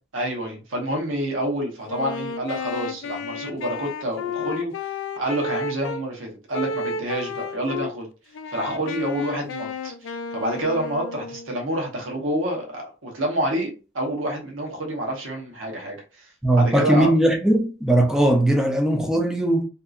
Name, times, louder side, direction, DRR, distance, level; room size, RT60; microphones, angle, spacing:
voice 1, 0.1-4.7 5.1-8.1 8.5-17.1, right 1 dB, 80° right, 0.9 m, -28 dB
Wind instrument woodwind instrument, 1.8-6.0 6.5-7.9 8.3-11.5, left 3 dB, 65° left, 0.3 m, -32 dB
voice 2, 16.4-19.7, right 1 dB, 5° right, 0.4 m, -19 dB
2.7 x 2.4 x 2.4 m
head